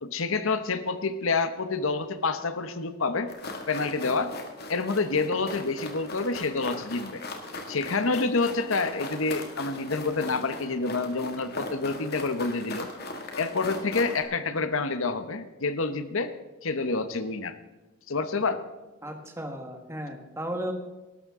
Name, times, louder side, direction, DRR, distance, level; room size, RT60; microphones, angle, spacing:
voice 1, 0.0-3.3 3.7-4.3 4.7-7.2 7.7-12.9 13.4-16.3 16.6-17.5 18.1-18.6, left 3 dB, 70° left, 11 dB, 0.9 m, -28 dB
sound 1, 3.3-14.2, left 2 dB, 45° left, 2.1 m, -39 dB
voice 2, 19.0-20.7, right 1 dB, 10° right, 4 dB, 1.6 m, -35 dB
19.5 x 12.0 x 3.7 m, 1.2 s
head